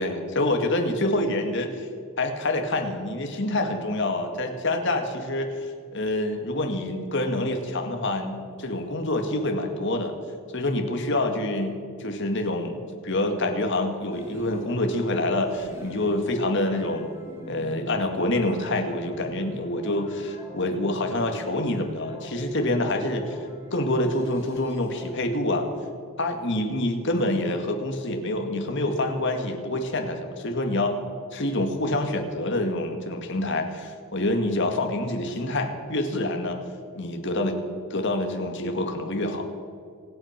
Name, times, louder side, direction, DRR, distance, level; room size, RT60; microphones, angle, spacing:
voice 1, 0.0-1.9 2.2-10.1 10.5-17.1 17.5-23.4 23.7-25.7 26.2-31.0 31.3-36.6 37.0-37.6 37.9-39.4, left 1 dB, 55° left, 4 dB, 2.1 m, -26 dB
sound 1, 14.1-25.1, equal, 15° right, 2.8 m, -44 dB
26.0 x 8.9 x 5.9 m, 2.3 s
head